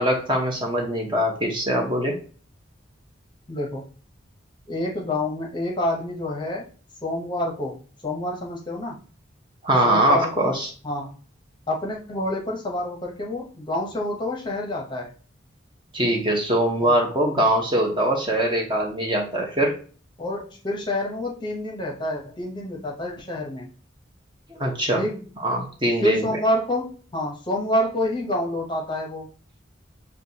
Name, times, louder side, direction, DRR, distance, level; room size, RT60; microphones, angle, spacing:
voice 1, 0.0-2.2 9.6-10.7 15.9-19.8 24.6-25.0 25.4-26.2, right 1 dB, 25° right, 0 dB, 0.8 m, -22 dB
voice 2, 3.5-3.8 4.7-6.7 7.0-7.8 8.0-9.0 9.8-10.5 10.8-11.2 11.7-15.1 16.8-17.0 20.2-23.7 25.0-25.2 26.0-29.3, left 1 dB, 25° left, 0 dB, 0.8 m, -27 dB
6.6 x 2.2 x 2.8 m, 0.40 s
head